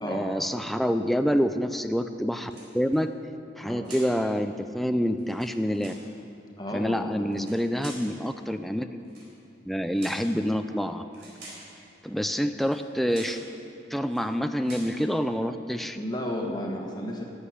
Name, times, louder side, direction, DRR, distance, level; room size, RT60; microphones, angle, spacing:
voice 1, 0.0-3.1 3.6-5.9 6.7-9.0 9.7-11.0 12.0-13.4 13.9-16.0, equal, ahead, 8 dB, 0.4 m, -27 dB
sound 1, 2.4-3.0 3.8-4.2 5.2-6.1 7.3-8.1 9.0-9.3 10.0-10.3 11.1-11.7 12.6-12.8 13.1-13.5 14.0-14.3 14.6-15.0, right 2 dB, 85° right, 4.2 m, -46 dB
voice 2, 6.6-7.3 16.0-17.2, left 1 dB, 25° left, 0 dB, 1.2 m, -33 dB
12.0 x 7.9 x 9.8 m, 2.6 s
head